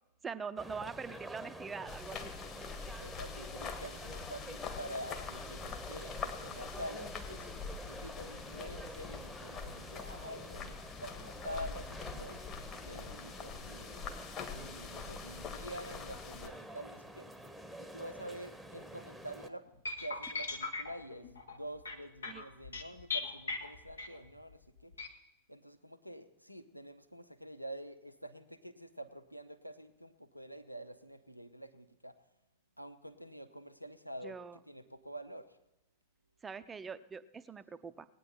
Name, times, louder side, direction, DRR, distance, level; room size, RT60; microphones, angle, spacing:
voice 1, 0.2-2.3 22.3-22.4 34.2-34.6 36.4-38.1, right 5 dB, 15° right, 12 dB, 0.6 m, -43 dB
sound 1, 0.6-19.5, right 1 dB, ahead, 1.0 m, -48 dB
sound 2, 1.9-16.5, left 6 dB, 35° left, 1.7 m, -44 dB
voice 2, 3.0-7.5 7.8-12.4 12.8-17.3 17.8-19.7 20.0-24.9 25.5-32.2 32.8-35.6, right 1 dB, 90° right, 8 dB, 0.7 m, -47 dB
sound 3, 19.8-24.4 24.9-25.1, left 4 dB, 75° left, 1.3 m, -39 dB
19.0 x 9.1 x 4.5 m, 0.96 s
figure-of-eight pair, 90°, 0 cm